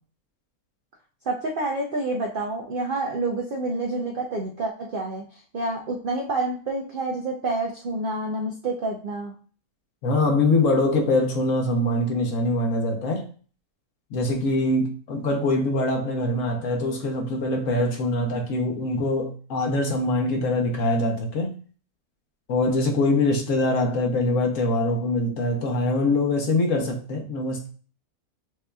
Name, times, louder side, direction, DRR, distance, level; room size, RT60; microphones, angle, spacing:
voice 1, 1.3-5.2 5.5-9.3, right 2 dB, 55° right, 0.6 m, -28 dB
voice 2, 10.0-13.3 14.1-21.5 22.5-27.7, left 2 dB, 65° left, 1.2 m, -23 dB
7.6 x 2.8 x 2.3 m
omnidirectional pair, 1.5 m